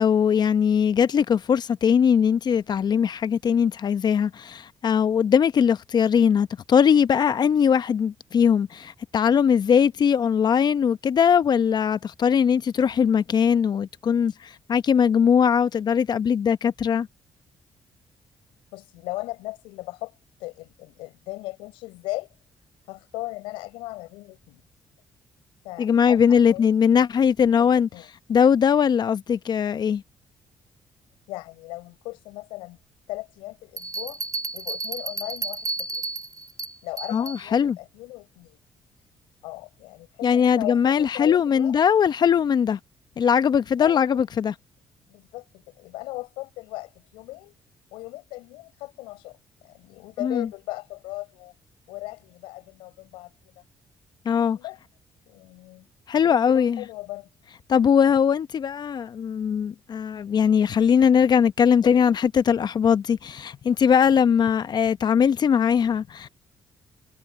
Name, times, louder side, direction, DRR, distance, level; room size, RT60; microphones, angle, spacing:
voice 1, 0.0-17.1 25.8-27.9 28.3-30.0 37.1-37.8 40.2-42.8 43.2-44.5 50.2-50.5 54.2-54.6 56.1-56.8 57.7-66.3, left 7 dB, 55° left, 0.9 m, -20 dB
voice 2, 18.7-20.1 20.4-22.3 22.9-24.6 25.6-26.7 27.6-28.1 31.3-32.8 33.1-34.2 34.5-36.0 36.8-38.6 39.4-41.7 43.8-44.3 45.1-47.5 47.9-51.5 51.9-53.3 54.5-54.8 55.3-55.9 56.2-57.3, left 21 dB, 90° left, 5.6 m, -37 dB
sound 1, 33.8-37.4, right 3 dB, 45° right, 4.6 m, -32 dB
supercardioid pair, 60°, 9 cm